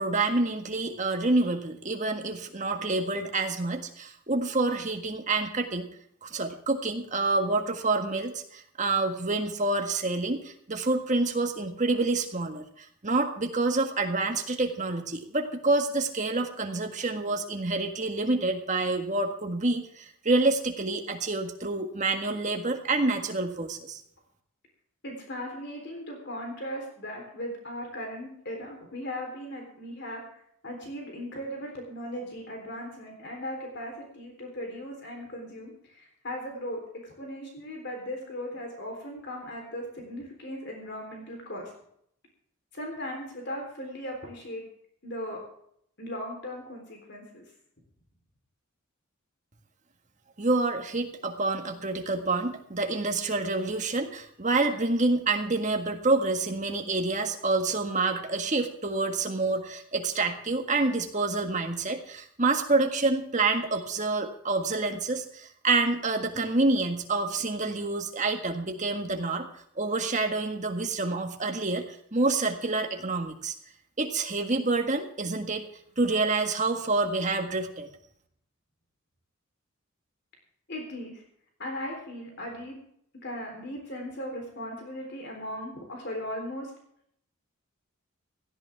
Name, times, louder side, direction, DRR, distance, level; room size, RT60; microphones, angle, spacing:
voice 1, 0.0-5.9 6.2-24.0 50.4-69.5 69.8-73.5 74.0-75.6 76.0-77.9, right 3 dB, 35° right, 4 dB, 1.7 m, -27 dB
voice 2, 25.0-41.7 42.7-44.6 45.0-45.4 46.0-47.4 80.7-81.2 81.6-82.8 83.2-86.7, equal, 50° left, 2 dB, 3.7 m, -38 dB
17.0 x 14.0 x 3.5 m, 0.69 s
head